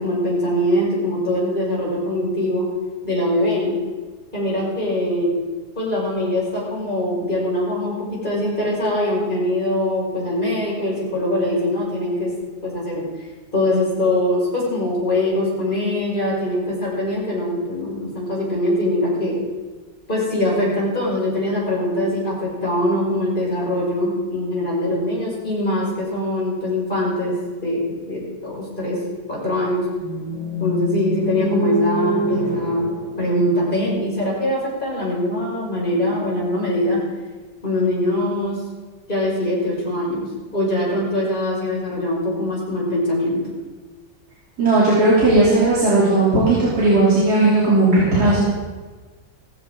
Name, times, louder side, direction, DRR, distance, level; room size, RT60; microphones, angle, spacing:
voice 1, 0.0-2.7 3.0-3.7 4.3-5.3 5.7-12.3 12.6-13.1 13.5-19.3 20.1-29.0 29.3-29.9 30.6-32.9 33.2-37.0 37.6-38.6 39.1-40.3 40.5-43.4, left 1 dB, 25° left, -6 dB, 6.0 m, -22 dB
sound 1, 30.0-34.1, right 1 dB, 85° right, 6.4 m, -26 dB
voice 2, 44.6-48.4, right 2 dB, 50° right, -9 dB, 3.9 m, -16 dB
16.5 x 15.0 x 3.9 m, 1.3 s
omnidirectional pair, 2.1 m